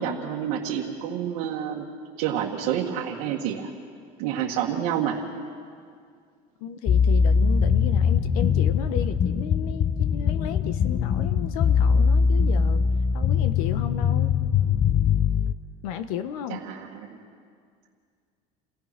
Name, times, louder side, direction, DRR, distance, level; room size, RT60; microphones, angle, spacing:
voice 1, 0.0-1.9 2.2-3.7 4.2-5.3 16.5-17.2, right 9 dB, 70° right, -4 dB, 1.9 m, -28 dB
voice 2, 6.6-12.9 13.1-14.3 15.8-16.6, left 9 dB, 85° left, 10 dB, 1.5 m, -34 dB
sound 1, 6.9-15.5, left 6 dB, 30° left, 0.6 m, -22 dB
29.0 x 16.5 x 6.1 m, 2.2 s
cardioid pair, 150°, 18 cm